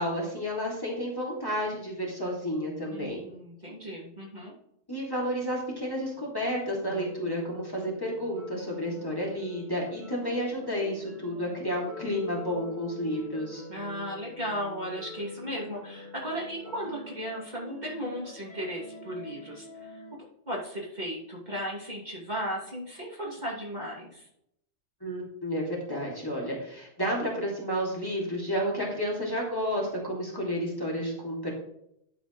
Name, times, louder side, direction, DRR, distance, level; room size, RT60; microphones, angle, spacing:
voice 1, 0.0-3.2 4.9-13.6 25.0-31.5, equal, 15° left, -4 dB, 2.8 m, -31 dB
voice 2, 2.9-4.5 13.7-24.3, equal, 35° right, -4 dB, 2.9 m, -36 dB
sound 1, 6.9-20.1, left 1 dB, 40° left, 2.5 m, -45 dB
11.5 x 7.8 x 3.2 m, 0.76 s
omnidirectional pair, 1.3 m